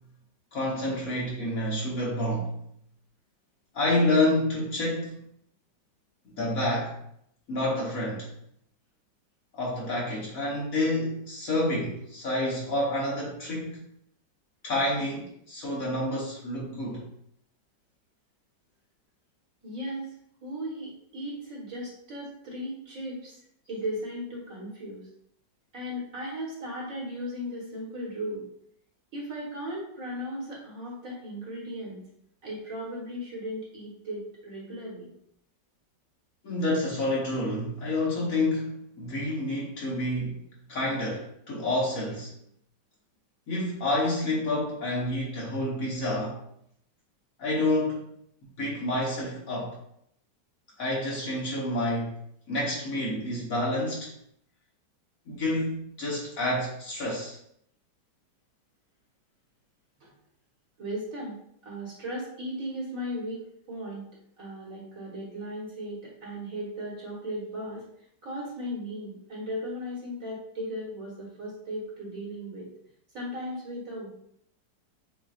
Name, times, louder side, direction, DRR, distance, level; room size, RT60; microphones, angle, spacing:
voice 1, 0.5-2.5 3.7-5.3 6.4-7.0 7.5-8.3 9.5-13.8 14.6-17.1 36.4-40.4 40.7-42.3 43.5-46.4 47.4-48.1 48.6-49.8 50.8-52.2 52.5-54.1 55.3-57.4, left 1 dB, 50° left, -5 dB, 1.5 m, -28 dB
voice 2, 19.6-20.2 20.4-23.4 23.7-25.1 25.7-28.5 29.1-32.0 32.4-35.1 60.0-60.1 60.8-64.0 64.4-67.8 68.2-72.7 73.1-74.1, equal, 50° right, -5 dB, 1.8 m, -36 dB
7.4 x 2.6 x 2.5 m, 0.70 s
omnidirectional pair, 1.9 m